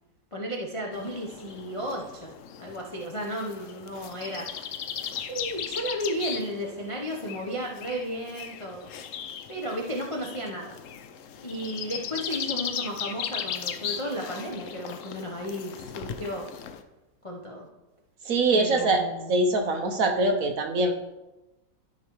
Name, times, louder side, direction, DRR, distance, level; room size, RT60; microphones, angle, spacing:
voice 1, 0.3-2.3 2.6-4.8 5.3-8.9 9.5-10.8 11.4-16.4 17.2-17.7 18.5-19.4, equal, 45° left, -2 dB, 0.4 m, -34 dB
sound 1, 0.9-16.8, left 8 dB, 80° left, 0.7 m, -37 dB
voice 2, 18.2-19.0 19.3-20.9, right 2 dB, 60° right, 4 dB, 1.0 m, -23 dB
12.5 x 4.9 x 3.1 m, 1.0 s
omnidirectional pair, 1.9 m